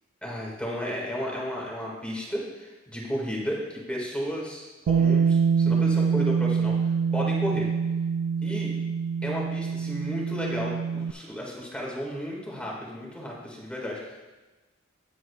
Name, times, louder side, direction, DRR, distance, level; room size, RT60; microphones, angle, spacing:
voice 1, 0.2-7.7 8.4-8.7 9.2-14.2, equal, 5° left, -3 dB, 1.9 m, -33 dB
Bass guitar, 4.9-11.1, right 6 dB, 75° right, 0.3 m, -25 dB
18.0 x 7.5 x 2.3 m, 1.2 s
head